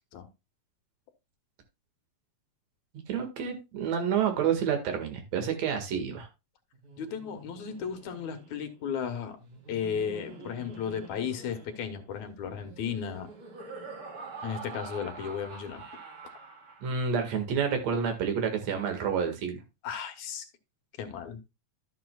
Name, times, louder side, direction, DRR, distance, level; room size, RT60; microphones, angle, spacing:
voice 1, 3.1-6.3 16.8-19.6, right 7 dB, 65° right, 5 dB, 2.9 m, -29 dB
Laughter, 6.7-17.2, right 4 dB, 85° right, 4.6 m, -46 dB
voice 2, 7.0-9.4 9.7-13.3 14.4-15.8 19.8-20.5 21.0-21.4, left 7 dB, 75° left, 8 dB, 2.5 m, -35 dB
12.5 x 7.5 x 2.3 m, 0.25 s
omnidirectional pair, 3.3 m